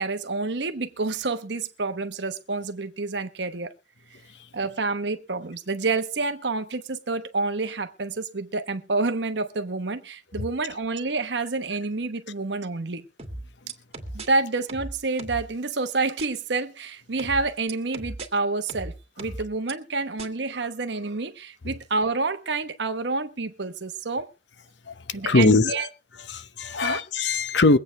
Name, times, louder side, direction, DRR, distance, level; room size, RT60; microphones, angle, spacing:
voice 1, 0.0-3.7 4.5-13.0 14.1-24.3 25.1-25.9 26.8-27.0, right 3 dB, 70° right, 1.1 m, -28 dB
sound 1, 13.2-14.3 14.7-15.5 16.2-16.3 17.2-18.3 18.7-19.7 20.2-20.3, right 2 dB, 35° right, 2.3 m, -37 dB
voice 2, 24.9-25.7 26.3-27.8, left 3 dB, 75° left, 0.9 m, -21 dB
23.5 x 8.7 x 3.3 m
head